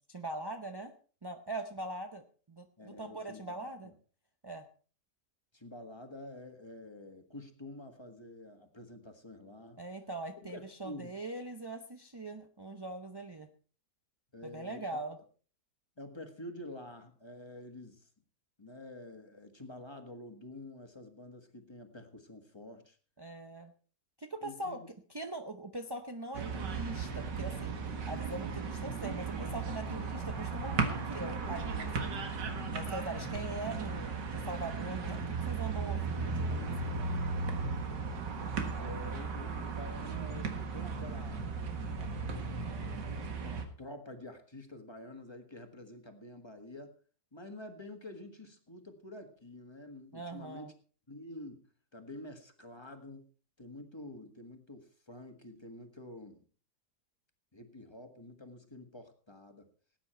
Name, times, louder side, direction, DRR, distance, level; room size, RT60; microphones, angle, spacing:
voice 1, 0.1-0.9 1.2-3.9 4.4-4.7 9.8-13.5 14.4-15.2 23.2-23.7 24.2-24.8 25.1-32.2 32.7-37.0 50.1-50.7, right 2 dB, 35° right, 5 dB, 0.3 m, -42 dB
voice 2, 2.8-3.9 5.5-9.8 10.4-11.1 14.3-15.0 16.0-18.1 18.6-23.0 24.4-24.9 38.3-41.5 41.9-42.7 43.4-46.9 47.3-50.7 51.1-51.6 51.9-53.3 53.6-56.4 57.5-59.7, left 1 dB, 15° left, 6 dB, 1.5 m, -48 dB
sound 1, 26.3-43.7, right 4 dB, 85° right, 2.2 m, -36 dB
18.0 x 9.1 x 4.4 m, 0.41 s
omnidirectional pair, 1.8 m